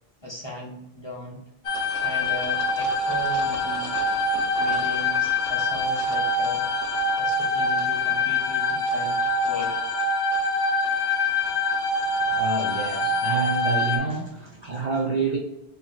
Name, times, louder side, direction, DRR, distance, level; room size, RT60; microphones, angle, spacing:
voice 1, 0.2-1.4 2.0-3.9 4.6-6.7 7.2-9.2 9.4-9.7 14.1-14.2, equal, 30° left, -3 dB, 0.7 m, -37 dB
sound 1, 1.6-14.0, left 2 dB, 65° left, 0.9 m, -24 dB
voice 2, 12.1-15.4, right 5 dB, 50° right, -1 dB, 0.6 m, -28 dB
3.0 x 2.8 x 3.9 m, 0.83 s
omnidirectional pair, 1.1 m